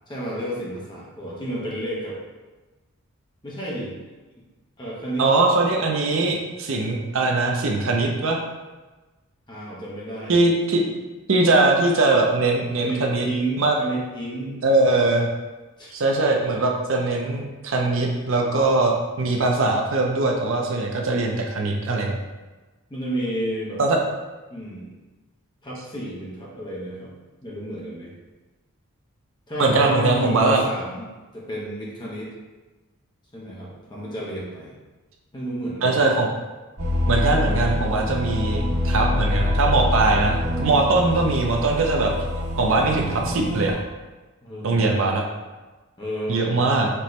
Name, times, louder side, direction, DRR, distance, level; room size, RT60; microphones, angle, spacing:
voice 1, 0.1-2.2 3.4-4.0 4.8-5.3 9.5-10.4 12.8-15.0 15.8-16.0 22.9-23.8 24.5-24.9 25.6-27.1 27.4-28.1 29.5-31.0 31.3-32.3 33.3-34.7 35.3-36.0 44.4-45.1 46.0-46.7, right 1 dB, 20° left, -6 dB, 0.9 m, -31 dB
voice 2, 5.2-8.4 10.3-10.8 11.3-13.3 13.6-13.7 14.6-15.3 15.9-22.2 23.8-24.0 29.6-30.6 35.8-36.3 37.1-42.1 42.6-43.8 44.6-45.2 46.3-46.9, right 3 dB, 60° right, 1 dB, 0.5 m, -21 dB
sound 1, 36.8-43.7, left 1 dB, 85° right, 1.4 m, -25 dB
4.5 x 3.0 x 3.2 m, 1.2 s
head